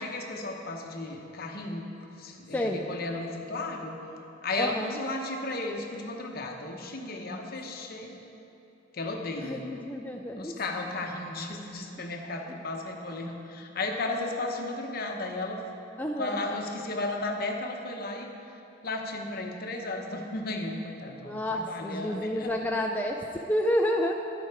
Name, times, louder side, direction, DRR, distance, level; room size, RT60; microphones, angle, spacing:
voice 1, 0.0-1.9 2.1-4.0 4.4-8.2 8.9-9.7 10.4-15.6 16.2-22.7, left 2 dB, 50° left, 3 dB, 0.9 m, -34 dB
voice 2, 4.6-5.0 7.2-7.4 9.4-10.6 16.0-16.4 21.2-24.1, equal, 10° left, 1 dB, 0.3 m, -30 dB
10.5 x 7.9 x 4.6 m, 2.9 s
head